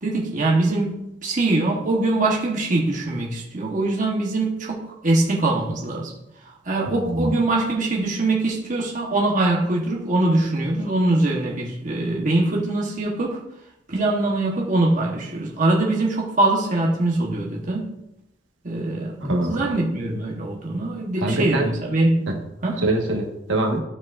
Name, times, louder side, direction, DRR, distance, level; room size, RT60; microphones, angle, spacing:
voice 1, 0.0-6.1 6.6-13.4 13.9-17.9 18.6-19.1 19.5-22.3 22.6-22.8, right 2 dB, 45° right, -2 dB, 1.1 m, -22 dB
voice 2, 6.9-7.3 19.2-19.6 21.2-21.7 22.3-22.4 22.8-23.8, right 1 dB, 75° right, 1 dB, 1.3 m, -23 dB
13.5 x 4.8 x 2.5 m, 0.86 s
head